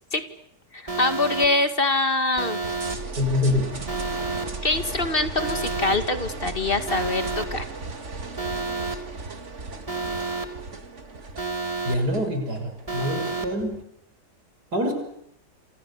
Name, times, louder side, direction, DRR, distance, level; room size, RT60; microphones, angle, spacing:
voice 1, 0.7-2.6 4.6-7.6, left 2 dB, 30° left, 8 dB, 2.1 m, -24 dB
Alarm, 0.9-1.5 2.4-3.0 3.9-4.5 5.4-6.0 6.9-7.5 8.4-9.0 9.9-10.5 11.4-12.0 12.9-13.5, right 3 dB, 20° right, 2.8 m, -29 dB
sound 1, 2.6-13.8, right 3 dB, 40° right, 2.4 m, -36 dB
voice 2, 3.2-3.7 11.8-13.8 14.7-14.9, left 1 dB, 60° right, 6 dB, 6.7 m, -25 dB
28.0 x 28.0 x 7.0 m, 0.75 s
omnidirectional pair, 1.9 m